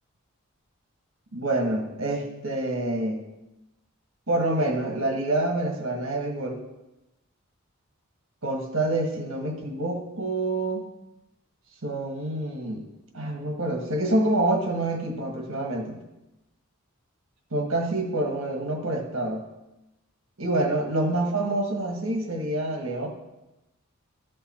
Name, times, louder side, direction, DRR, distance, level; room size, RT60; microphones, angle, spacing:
voice 1, 1.3-3.2 4.3-6.6 8.4-10.9 11.8-12.8 13.1-16.0 17.5-19.4 20.4-23.1, right 2 dB, 65° right, 2 dB, 1.6 m, -27 dB
14.0 x 5.4 x 4.4 m, 0.96 s
head